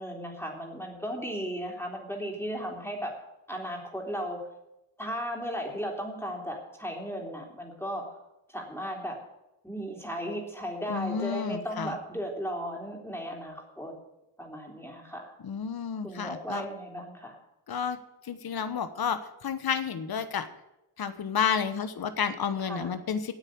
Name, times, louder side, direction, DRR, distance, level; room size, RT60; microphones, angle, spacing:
voice 1, 0.0-3.1 3.5-4.4 5.0-8.2 8.5-9.2 9.6-13.9 14.4-15.3 16.0-17.4 22.6-22.9, equal, 5° left, -1 dB, 3.5 m, -35 dB
voice 2, 10.9-12.0 15.4-16.6 17.7-18.0 18.2-20.5 21.0-23.3, left 7 dB, 45° left, 10 dB, 1.1 m, -31 dB
9.1 x 8.9 x 8.4 m, 0.91 s
cardioid pair, 90°, 50 cm